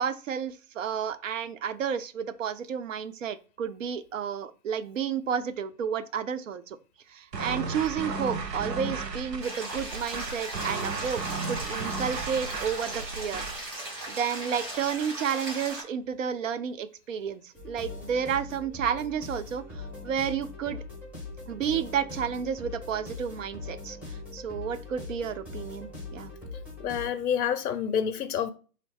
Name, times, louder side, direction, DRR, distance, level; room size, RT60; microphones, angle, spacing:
voice 1, 0.0-6.8 7.1-11.2 11.5-13.4 13.8-20.8 21.5-26.3, right 7 dB, 55° right, 0.5 m, -31 dB
sound 1, 7.3-13.7, right 3 dB, 80° right, 0.9 m, -34 dB
sound 2, 9.4-15.8, right 1 dB, 30° right, 1.6 m, -38 dB
sound 3, 17.5-27.1, left 3 dB, 5° right, 1.7 m, -41 dB
voice 2, 26.8-28.5, left 8 dB, 65° left, 0.5 m, -28 dB
4.0 x 2.6 x 3.3 m
figure-of-eight pair, 125°, 49 cm